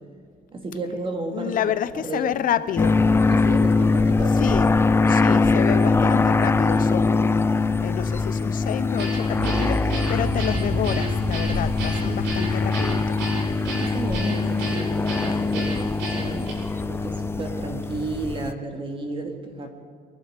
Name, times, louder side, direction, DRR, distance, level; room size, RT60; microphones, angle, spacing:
voice 1, 0.5-2.3 3.3-4.3 13.7-16.5 16.8-19.7, right 2 dB, 30° right, 3 dB, 2.5 m, -33 dB
voice 2, 1.3-3.0 4.4-4.7 5.1-13.2, left 10 dB, 55° left, 14 dB, 0.7 m, -29 dB
sound 1, 2.8-18.5, left 3 dB, 15° left, 0.4 m, -22 dB
Guitar, 9.0-16.5, right 1 dB, 85° right, 5.6 m, -32 dB
sound 2, 9.3-15.3, right 2 dB, 65° right, 2.8 m, -32 dB
24.5 x 11.5 x 5.2 m, 2.2 s
cardioid pair, 110°, 17 cm